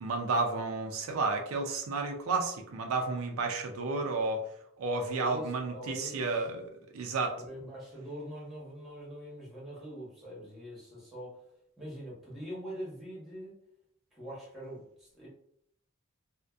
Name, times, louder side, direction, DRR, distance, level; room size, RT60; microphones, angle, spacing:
voice 1, 0.0-4.4 4.8-7.4, right 3 dB, 85° right, 3 dB, 0.4 m, -32 dB
voice 2, 5.0-6.2 7.4-11.4 11.8-13.6 14.1-15.3, equal, ahead, -7 dB, 1.0 m, -43 dB
2.6 x 2.1 x 2.2 m, 0.70 s
head